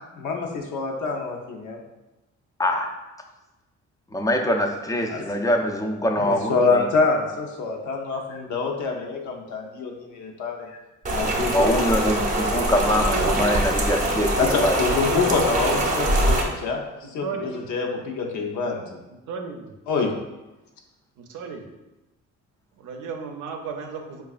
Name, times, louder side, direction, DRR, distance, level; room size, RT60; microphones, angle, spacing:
voice 1, 0.1-1.8 5.1-5.3 6.2-10.8 11.1-12.1 14.4-16.8 17.1-19.0 19.9-20.1, left 4 dB, 75° left, 2 dB, 0.7 m, -26 dB
voice 2, 2.6-2.9 4.1-6.8 11.5-14.8, left 1 dB, 10° left, 2 dB, 0.4 m, -23 dB
Rain, 11.0-16.4, right 1 dB, 25° right, 0.6 m, -23 dB
voice 3, 12.8-13.4 14.7-15.3 15.7-16.0 17.0-17.6 19.3-19.7 21.2-21.7 22.7-24.2, right 5 dB, 80° right, 3 dB, 0.6 m, -34 dB
4.7 x 2.3 x 2.4 m, 1.0 s
cardioid pair, 90°, 30 cm